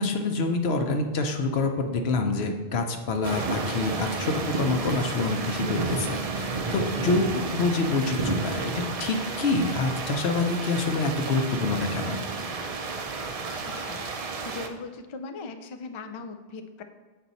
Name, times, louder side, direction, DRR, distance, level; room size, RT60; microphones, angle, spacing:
voice 1, 0.0-8.7 9.0-12.2, left 3 dB, 90° left, 5 dB, 1.0 m, -26 dB
sound 1, 3.2-14.7, right 4 dB, 45° right, 0.5 m, -31 dB
voice 2, 14.4-16.8, left 4 dB, 45° left, 7 dB, 0.4 m, -39 dB
7.4 x 4.5 x 4.0 m, 1.3 s
omnidirectional pair, 1.0 m